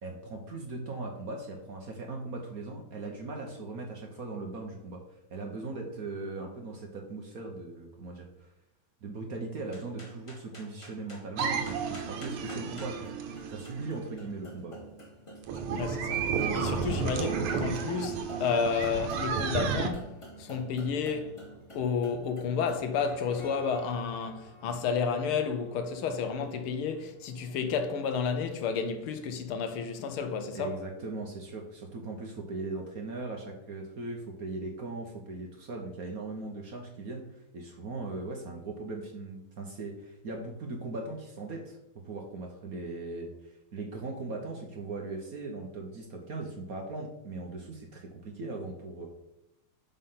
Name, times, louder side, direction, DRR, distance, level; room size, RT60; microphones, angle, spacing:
voice 1, 0.0-5.0 5.3-8.5 9.0-14.8 30.5-41.8 42.0-49.1, right 3 dB, 55° right, 1.1 m, -39 dB
sound 1, 9.7-29.2, equal, 20° left, 0.9 m, -49 dB
sound 2, 11.4-14.0 15.4-19.9, right 6 dB, 90° right, 1.8 m, -32 dB
voice 2, 15.7-20.1 20.4-21.3 21.7-30.8, left 6 dB, 80° left, 1.7 m, -31 dB
5.6 x 5.4 x 5.6 m
omnidirectional pair, 2.4 m